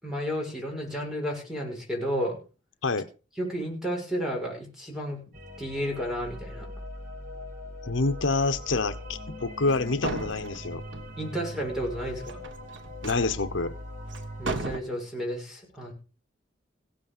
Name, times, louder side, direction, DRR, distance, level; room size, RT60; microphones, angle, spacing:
voice 1, 0.0-2.4 3.4-5.2 5.6-6.7 11.2-12.4 14.4-15.9, equal, 5° right, 0 dB, 6.4 m, -32 dB
sound 1, 5.3-14.6, left 1 dB, 45° right, 2.7 m, -41 dB
voice 2, 7.8-10.8 13.0-13.7, left 3 dB, 80° left, 10 dB, 1.0 m, -27 dB
sound 2, 9.7-9.8 10.0-11.2 12.2-13.3 14.1-14.2 14.5-14.8, right 3 dB, 75° right, 1.5 m, -35 dB
16.5 x 8.5 x 5.6 m, 0.35 s
head